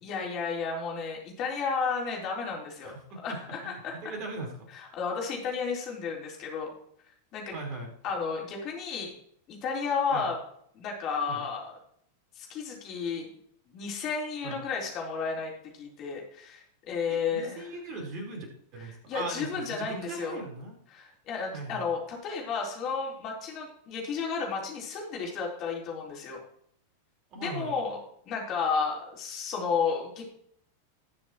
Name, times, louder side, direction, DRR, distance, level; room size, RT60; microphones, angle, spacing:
voice 1, 0.0-4.1 4.7-6.7 7.3-7.6 8.0-9.1 9.5-10.4 10.7-11.7 12.4-13.3 13.7-17.7 19.1-20.4 20.9-26.4 27.4-28.0 28.2-30.2, left 5 dB, 35° left, -1 dB, 4.1 m, -32 dB
voice 2, 2.8-3.4 3.6-4.5 7.5-7.9 10.1-10.3 11.3-11.4 14.4-14.6 17.1-18.5 18.7-20.8 21.5-21.8 27.3-27.7, right 2 dB, 40° right, 0 dB, 4.4 m, -39 dB
19.5 x 7.0 x 3.1 m, 0.65 s
figure-of-eight pair, 90°, 0 cm